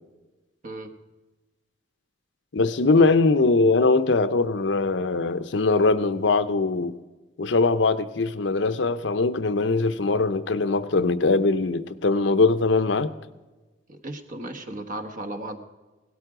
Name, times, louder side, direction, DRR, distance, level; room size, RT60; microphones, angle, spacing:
voice 1, 2.5-6.9 7.4-13.1, left 3 dB, 75° left, 0.7 m, -21 dB
voice 2, 13.9-15.6, right 1 dB, 45° right, 1.3 m, -35 dB
17.0 x 12.5 x 4.9 m
head